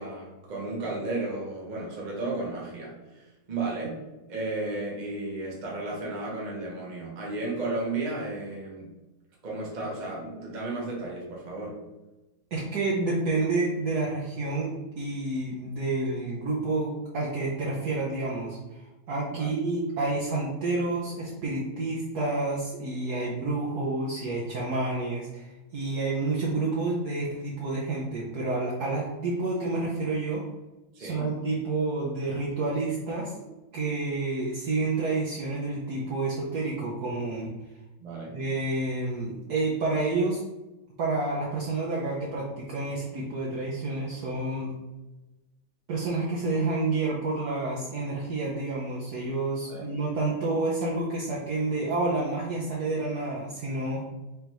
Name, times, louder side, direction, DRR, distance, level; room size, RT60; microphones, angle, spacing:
voice 1, 0.0-4.0 4.3-8.9 9.4-11.8 19.3-19.5 30.9-31.4 38.0-38.4 49.7-49.8, right 2 dB, 30° right, -4 dB, 0.9 m, -33 dB
voice 2, 12.5-18.6 19.1-30.4 31.0-33.3 33.7-37.5 38.3-40.4 41.0-44.7 45.9-54.0, right 3 dB, 60° right, -4 dB, 1.1 m, -29 dB
5.1 x 3.4 x 3.0 m, 1.0 s
omnidirectional pair, 2.3 m